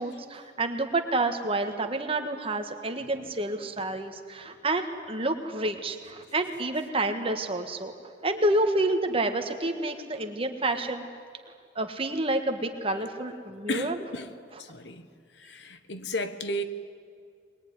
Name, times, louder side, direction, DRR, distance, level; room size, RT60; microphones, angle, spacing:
voice 1, 0.0-7.9 8.2-11.1 11.7-14.1 14.5-14.6, right 2 dB, 30° right, 6 dB, 1.5 m, -29 dB
voice 2, 13.7-14.3 14.6-15.1 15.4-16.6, left 1 dB, 60° left, 10 dB, 1.3 m, -34 dB
22.0 x 21.0 x 9.7 m, 2.2 s
head